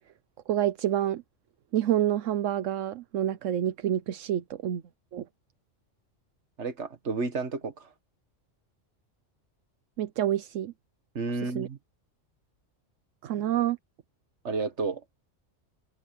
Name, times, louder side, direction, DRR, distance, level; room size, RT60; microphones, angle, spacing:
voice 1, 0.5-1.2 1.7-4.8 5.1-5.2 10.0-10.7 11.4-11.7 13.2-13.8, right 11 dB, 80° right, 1.1 m, -28 dB
voice 2, 6.6-7.9 11.2-11.8 14.4-15.0, right 4 dB, 65° right, 2.0 m, -31 dB
open air
omnidirectional pair, 1.3 m